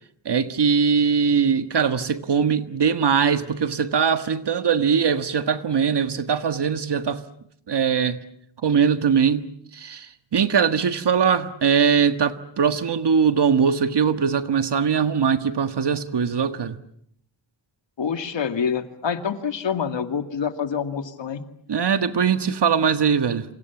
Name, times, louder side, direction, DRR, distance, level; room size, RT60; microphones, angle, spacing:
voice 1, 0.3-7.2 7.7-8.2 8.6-9.5 9.8-10.1 10.3-16.8 21.7-23.4, right 6 dB, 65° right, 1.6 m, -21 dB
voice 2, 18.0-21.4, left 7 dB, 75° left, 2.3 m, -26 dB
29.0 x 27.0 x 7.2 m
wide cardioid pair, 120°, 45 cm